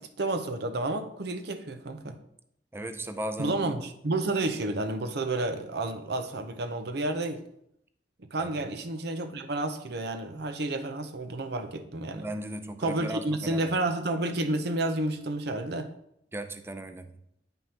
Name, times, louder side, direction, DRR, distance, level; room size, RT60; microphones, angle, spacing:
voice 1, 0.0-2.2 3.4-7.4 8.2-12.3 12.8-15.9, right 2 dB, 65° right, 8 dB, 0.7 m, -30 dB
voice 2, 2.7-3.7 8.4-8.6 12.1-13.7 16.3-17.1, right 1 dB, 15° right, 8 dB, 0.5 m, -37 dB
9.2 x 5.4 x 2.9 m, 0.75 s
head